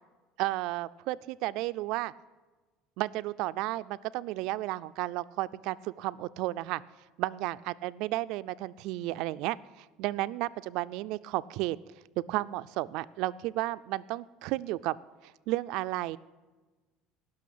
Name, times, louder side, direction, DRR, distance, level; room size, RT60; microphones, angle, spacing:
voice 1, 0.4-2.1 3.0-6.8 7.2-11.8 12.2-15.0 15.2-16.2, right 17 dB, 55° right, 15 dB, 0.4 m, -33 dB
17.0 x 6.2 x 8.5 m, 1.3 s
cardioid pair, 175°, 0 cm